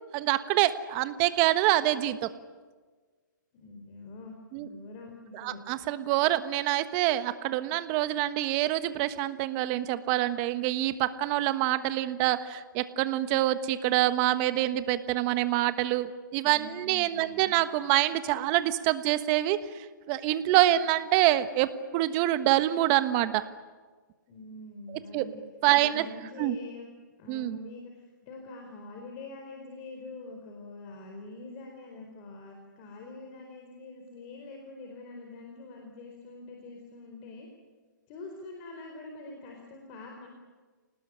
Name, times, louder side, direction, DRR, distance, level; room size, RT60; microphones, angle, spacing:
voice 1, 0.1-2.3 4.5-4.7 5.4-19.6 20.1-23.4 25.1-25.2 25.6-26.1 26.4-26.5 27.3-27.6, right 15 dB, 35° right, 12 dB, 1.3 m, -26 dB
voice 2, 3.5-5.6 16.5-17.5 24.3-25.4 25.7-26.9 27.2-37.5 38.1-40.3, left 2 dB, 35° left, 2 dB, 4.5 m, -45 dB
28.0 x 19.0 x 9.9 m, 1.4 s
hypercardioid pair, 140°, 11 cm